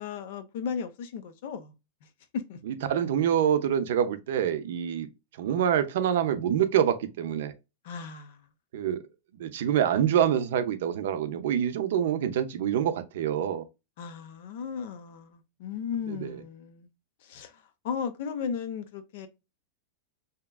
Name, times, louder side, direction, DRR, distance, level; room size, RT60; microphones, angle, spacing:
voice 1, 0.0-1.7 2.3-2.6 7.8-8.4 14.0-16.9 17.2-19.3, left 6 dB, 60° left, 0.5 m, -35 dB
voice 2, 2.6-5.1 5.4-7.5 8.7-9.1 9.3-13.7 16.1-16.4, right 9 dB, 70° right, 0.4 m, -26 dB
2.8 x 2.3 x 2.2 m
supercardioid pair, 155°, 0 cm